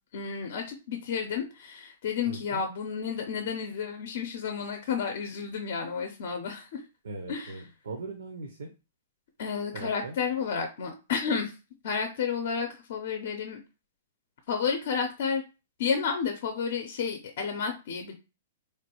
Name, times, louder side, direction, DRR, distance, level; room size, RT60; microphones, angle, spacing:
voice 1, 0.1-6.8 7.3-7.6 9.4-11.6 11.8-13.6 14.5-15.4 15.8-18.1, left 6 dB, 60° left, 5 dB, 0.6 m, -31 dB
voice 2, 2.3-2.6 7.0-8.7 9.7-10.2, right 3 dB, 80° right, 4 dB, 0.6 m, -39 dB
3.2 x 2.3 x 2.9 m, 0.30 s
hypercardioid pair, 120°, 0 cm